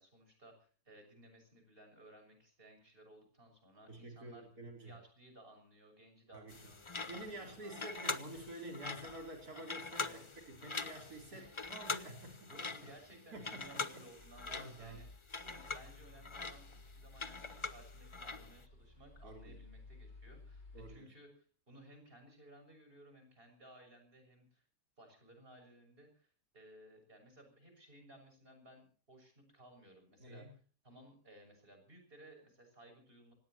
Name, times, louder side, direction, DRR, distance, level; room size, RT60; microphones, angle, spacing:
voice 1, 0.0-4.5 4.8-8.0 10.0-10.3 11.3-11.5 12.5-24.6 25.0-30.5 30.8-33.3, right 1 dB, 40° right, 5 dB, 7.0 m, -59 dB
voice 2, 3.9-4.9 6.3-6.6 7.0-12.9 13.3-14.0 14.5-15.0 19.2-19.6 20.7-21.1 30.2-30.5, right 1 dB, 85° right, 4 dB, 4.7 m, -49 dB
sound 1, 6.5-18.6, left 4 dB, 25° left, 0.8 m, -44 dB
sound 2, 14.2-21.0, left 3 dB, 45° left, 5.3 m, -56 dB
25.5 x 19.0 x 3.0 m, 0.41 s
omnidirectional pair, 1.6 m